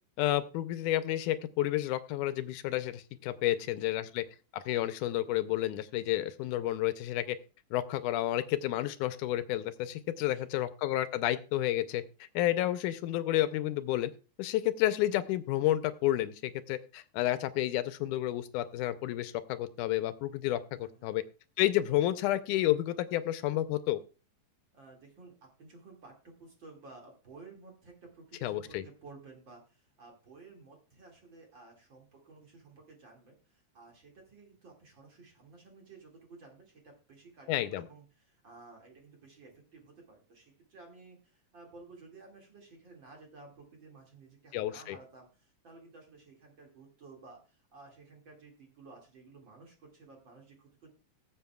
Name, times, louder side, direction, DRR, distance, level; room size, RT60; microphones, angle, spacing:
voice 1, 0.2-4.2 4.5-7.4 7.7-12.0 12.4-14.1 14.4-21.2 21.6-24.0 28.4-28.8 37.5-37.8 44.5-45.0, left 14 dB, 85° left, 12 dB, 2.1 m, -30 dB
voice 2, 3.6-4.1 10.1-10.6 20.8-21.3 24.7-25.3 25.6-50.9, right 3 dB, 40° right, 1 dB, 2.6 m, -54 dB
20.0 x 7.5 x 2.3 m, 0.34 s
omnidirectional pair, 3.5 m